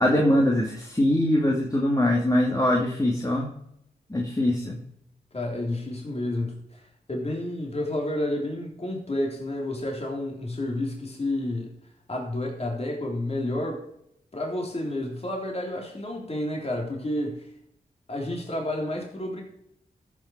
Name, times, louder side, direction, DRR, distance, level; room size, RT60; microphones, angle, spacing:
voice 1, 0.0-3.5 4.1-4.8, left 1 dB, 20° left, -1 dB, 2.3 m, -22 dB
voice 2, 5.3-6.8 7.1-11.7 12.1-13.8 14.3-17.5 18.1-19.4, left 1 dB, 40° left, 0 dB, 3.6 m, -30 dB
13.5 x 6.2 x 4.7 m, 0.74 s
cardioid pair, 45°, 16 cm